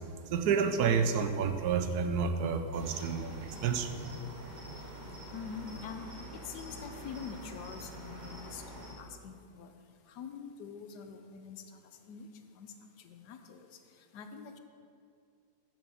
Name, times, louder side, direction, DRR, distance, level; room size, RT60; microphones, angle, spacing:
voice 1, 0.0-4.6, right 6 dB, 75° right, 7 dB, 1.1 m, -30 dB
Cricket, 2.7-8.9, right 1 dB, 30° right, 1.3 m, -46 dB
voice 2, 5.3-6.1 6.3-9.7 10.1-11.8 12.1-12.3 12.6-13.7 14.0-14.6, left 6 dB, 80° left, 7 dB, 1.2 m, -45 dB
6.8 x 6.0 x 6.3 m, 2.5 s
omnidirectional pair, 1.8 m